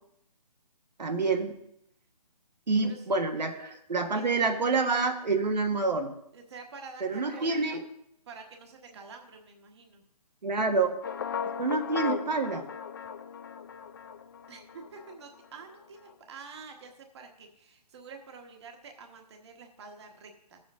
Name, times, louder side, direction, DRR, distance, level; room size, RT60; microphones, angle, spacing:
voice 1, 1.0-1.6 2.7-6.1 7.0-7.8 10.4-11.0 11.6-12.7, right 3 dB, 85° right, 4 dB, 1.4 m, -27 dB
voice 2, 4.1-4.8 6.3-7.8 8.3-10.0 14.5-20.6, right 4 dB, 40° right, 4 dB, 1.3 m, -48 dB
sound 1, 11.0-15.2, left 7 dB, 35° left, 0.4 m, -37 dB
14.5 x 7.3 x 3.6 m, 0.76 s
hypercardioid pair, 160°, 21 cm